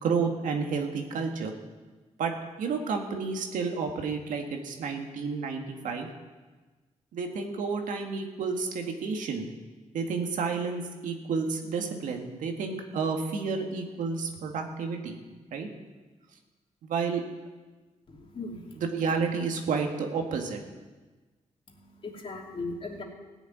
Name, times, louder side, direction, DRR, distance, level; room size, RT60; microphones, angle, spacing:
voice 1, 0.0-1.5 2.2-2.3 2.6-6.1 7.1-9.5 9.9-15.2 15.5-15.7 16.8-17.2 18.8-20.6, right 5 dB, 85° right, 3 dB, 1.8 m, -30 dB
voice 2, 18.1-18.8 21.7-23.0, left 3 dB, 45° left, -1 dB, 3.0 m, -38 dB
16.0 x 7.1 x 9.6 m, 1.3 s
cardioid pair, 95°, 13 cm